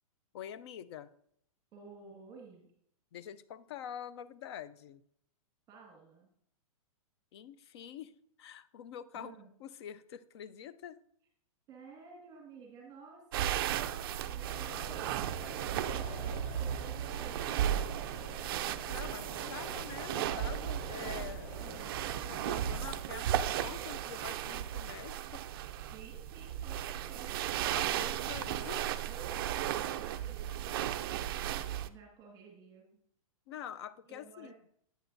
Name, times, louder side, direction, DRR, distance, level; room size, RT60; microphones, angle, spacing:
voice 1, 0.3-1.1 3.1-5.0 7.3-8.1 8.4-9.3 9.6-11.0 18.8-21.6 22.2-25.4 27.7-28.9 33.5-34.5, left 9 dB, 45° left, 0.4 m, -46 dB
voice 2, 1.7-2.7 5.7-6.3 9.1-9.5 11.7-18.4 19.2-19.6 21.6-22.2 25.9-27.4 27.8-28.3 29.1-32.8 34.1-34.5, right 5 dB, 20° right, 1.7 m, -54 dB
sound 1, 13.3-31.9, right 11 dB, 40° right, 0.4 m, -35 dB
sound 2, 14.4-23.0, left 1 dB, 30° left, 1.5 m, -48 dB
9.0 x 8.9 x 2.6 m
hypercardioid pair, 150°, 19 cm